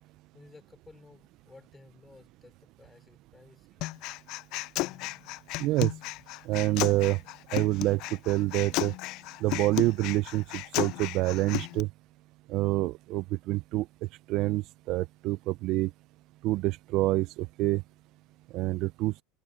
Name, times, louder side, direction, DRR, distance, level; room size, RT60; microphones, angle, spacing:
voice 1, 0.3-3.8, left 3 dB, 15° left, 4.8 m, -55 dB
Human voice, 3.8-11.8, left 20 dB, 60° left, 0.4 m, -34 dB
voice 2, 5.6-5.9 6.5-7.2 7.5-8.0 8.3-8.9 9.4-11.9 12.5-13.9 14.3-15.9 16.4-17.8 18.5-19.1, right 18 dB, 55° right, 0.5 m, -27 dB
supercardioid pair, 105°, 0 cm